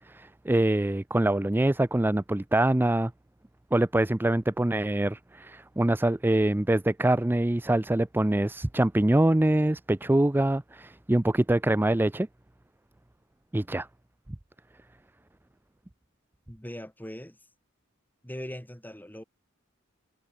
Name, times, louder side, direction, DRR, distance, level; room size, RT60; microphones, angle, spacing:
voice 1, 0.1-3.1 3.7-12.3 13.5-13.9, right 1 dB, 10° right, 0.4 m, -24 dB
voice 2, 16.5-17.4 18.2-19.2, equal, 10° left, 4.7 m, -40 dB
head